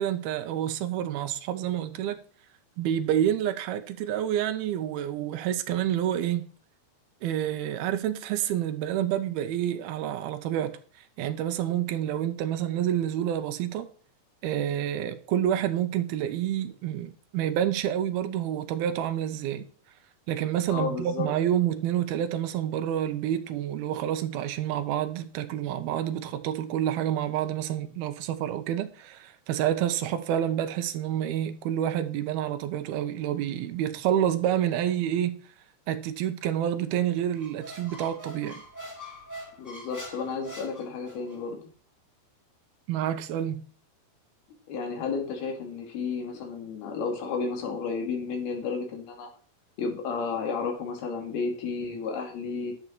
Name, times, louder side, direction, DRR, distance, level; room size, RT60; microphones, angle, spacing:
voice 1, 0.0-2.2 2.8-6.4 7.2-10.8 11.2-13.9 14.4-19.7 20.3-35.4 35.9-38.6 42.9-43.6, right 10 dB, 75° right, 2.6 m, -28 dB
voice 2, 20.7-21.3 39.6-41.6 44.7-49.3 49.8-52.7, left 5 dB, 70° left, 4.3 m, -32 dB
Squeak, 37.3-41.4, equal, 5° left, 1.4 m, -43 dB
11.0 x 8.2 x 4.5 m
omnidirectional pair, 4.7 m